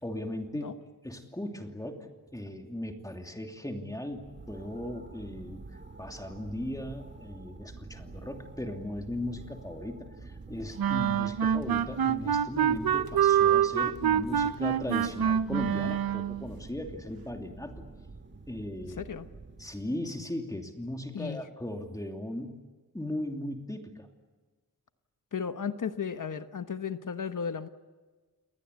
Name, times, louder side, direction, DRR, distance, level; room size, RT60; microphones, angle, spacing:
voice 1, 0.0-0.7 1.0-5.6 6.0-17.8 18.5-19.0 19.6-22.6 22.9-24.1, left 1 dB, 10° left, 3 dB, 2.8 m, -37 dB
sound 1, 4.1-20.1, right 3 dB, 30° right, 1.6 m, -48 dB
sound 2, 10.8-16.4, right 9 dB, 90° right, 0.9 m, -26 dB
voice 2, 18.8-19.3 21.1-21.4 25.3-27.7, left 6 dB, 60° left, 10 dB, 1.1 m, -35 dB
29.5 x 20.0 x 8.2 m, 1.3 s
wide cardioid pair, 120°, 35 cm